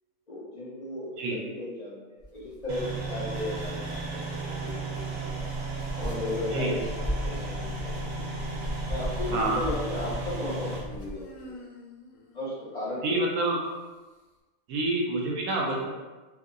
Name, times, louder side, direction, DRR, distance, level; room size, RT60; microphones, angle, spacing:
voice 1, 0.3-5.4 6.0-6.8 7.2-8.3 8.9-11.5 12.3-13.2, left 1 dB, 45° left, -8 dB, 0.5 m, -35 dB
sound 1, 2.2-11.5, right 1 dB, 5° right, 0.4 m, -38 dB
sound 2, 2.7-10.8, right 2 dB, 60° right, 0.8 m, -35 dB
Human voice, 8.7-9.7 10.8-13.5, left 2 dB, 85° left, 1.0 m, -49 dB
voice 2, 13.0-13.7 14.7-15.9, right 2 dB, 80° right, -1 dB, 1.1 m, -27 dB
2.7 x 2.7 x 2.5 m, 1.2 s
omnidirectional pair, 1.5 m